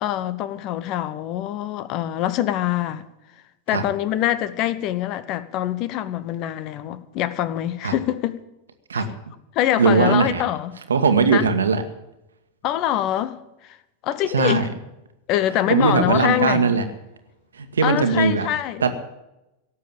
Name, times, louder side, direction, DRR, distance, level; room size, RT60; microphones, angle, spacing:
voice 1, 0.0-3.1 3.7-8.4 8.9-9.1 9.5-10.7 11.3-11.4 12.6-13.3 13.6-13.8 14.0-14.7 15.3-16.7 17.8-18.8, left 12 dB, 40° left, 0.9 m, -24 dB
voice 2, 9.8-10.4 10.9-11.8 14.3-14.7 15.7-16.8 17.5-18.5 18.8-18.9, right 5 dB, 70° right, 1.5 m, -19 dB
17.5 x 7.4 x 9.0 m
figure-of-eight pair, 90°, 0 cm